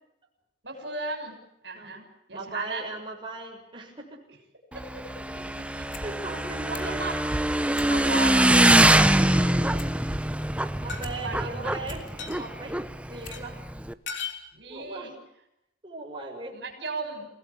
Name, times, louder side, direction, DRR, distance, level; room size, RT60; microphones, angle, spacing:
voice 1, 0.6-1.4 1.6-2.9 4.7-5.0 5.6-5.9 6.7-7.1 7.9-8.4 11.2-11.8 14.5-15.2 16.5-17.3, right 3 dB, 65° right, 4 dB, 6.7 m, -35 dB
voice 2, 2.3-4.2 6.0-7.0 8.2-8.3 9.0-9.9 10.8-12.8 13.1-13.6 14.7-15.1 15.8-16.6, right 3 dB, 25° right, -1 dB, 6.8 m, -39 dB
Motorcycle / Engine, 4.7-13.9, right 1 dB, 5° right, 0.9 m, -23 dB
sound 1, 5.9-6.1 6.4-7.0 7.4-7.9 8.3-8.4 8.6-9.2 9.5-11.2 11.6-12.1 12.7-12.8 13.2-13.5 13.8-13.9, left 2 dB, 45° left, 3.2 m, -41 dB
sound 2, 10.9-11.0 12.2-12.4 13.3-13.4 14.1-14.4, left 6 dB, 75° left, 3.7 m, -36 dB
30.0 x 18.5 x 8.5 m, 0.82 s
head